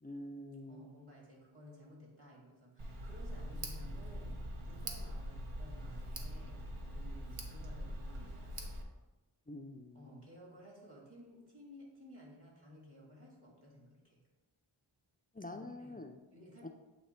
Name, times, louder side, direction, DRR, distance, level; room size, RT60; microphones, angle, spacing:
voice 1, 0.0-0.9 9.5-10.2 15.3-16.2 16.6-16.7, left 1 dB, 20° left, 4 dB, 0.4 m, -46 dB
voice 2, 0.7-8.7 9.9-14.2 15.5-16.0 16.3-16.7, equal, 50° right, -2 dB, 1.9 m, -56 dB
Tick, 2.8-8.8, equal, 80° right, 0.9 m, -43 dB
7.9 x 2.9 x 4.3 m, 1.1 s
wide cardioid pair, 50°, 49 cm